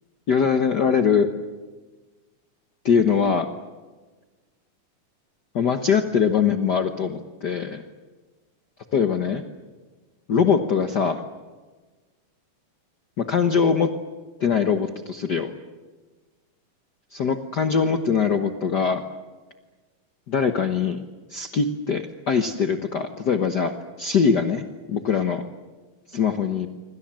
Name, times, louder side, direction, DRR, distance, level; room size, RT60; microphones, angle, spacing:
voice 1, 0.3-1.3 2.8-3.5 5.5-7.8 8.9-9.4 10.3-11.2 13.2-13.9 14.4-15.5 17.1-19.0 20.3-21.0 21.3-25.4 26.1-26.7, left 6 dB, 65° left, 6 dB, 1.0 m, -22 dB
27.5 x 25.5 x 7.6 m, 1.3 s
omnidirectional pair, 3.7 m